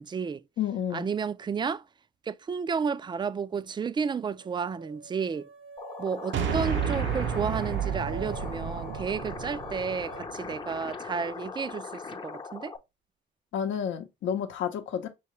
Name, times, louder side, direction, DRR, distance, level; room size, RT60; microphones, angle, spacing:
voice 1, 0.0-0.4 0.9-1.8 2.3-5.5 6.0-12.7, right 6 dB, 25° right, 0.3 m, -32 dB
voice 2, 0.6-1.1 13.5-15.1, left 8 dB, 75° left, 0.7 m, -30 dB
sound 1, 4.3-10.2, right 3 dB, 90° right, 1.3 m, -48 dB
sound 2, 5.8-12.8, left 4 dB, 25° left, 0.6 m, -40 dB
sound 3, 6.3-10.8, right 8 dB, 70° right, 0.6 m, -32 dB
5.5 x 2.8 x 3.0 m
cardioid pair, 90°, 20 cm